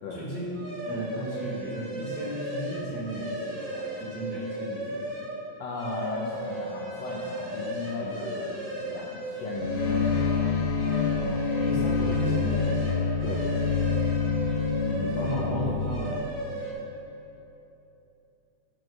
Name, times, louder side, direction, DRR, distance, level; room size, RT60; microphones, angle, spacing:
voice 1, 0.1-5.0 8.0-8.2 11.1-12.8 14.8-16.2, right 1 dB, 60° right, -8 dB, 2.1 m, -35 dB
sound 1, 0.5-5.3 5.7-10.3 10.7-15.5 15.8-16.7, right 1 dB, 40° right, 2.9 m, -35 dB
voice 2, 5.6-10.3 13.2-13.4 15.0-15.3, left 3 dB, 80° left, -4 dB, 2.0 m, -36 dB
sound 2, 9.5-15.9, left 5 dB, 60° left, 2.4 m, -26 dB
13.0 x 4.6 x 6.2 m, 2.9 s
omnidirectional pair, 5.2 m